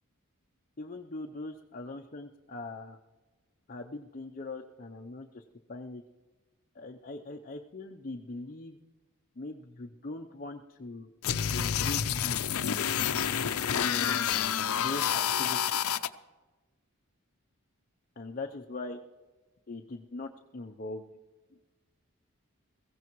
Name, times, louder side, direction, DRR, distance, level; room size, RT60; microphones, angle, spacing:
voice 1, 0.8-3.0 3.7-5.4 5.7-6.0 6.7-8.8 9.4-11.1 11.5-12.5 13.7-14.3 14.7-15.7 18.2-19.0 19.7-21.0, left 2 dB, 40° left, 3 dB, 0.7 m, -41 dB
sound 1, 11.2-16.1, left 9 dB, 85° left, 0.6 m, -29 dB
22.0 x 15.5 x 3.1 m, 1.2 s
head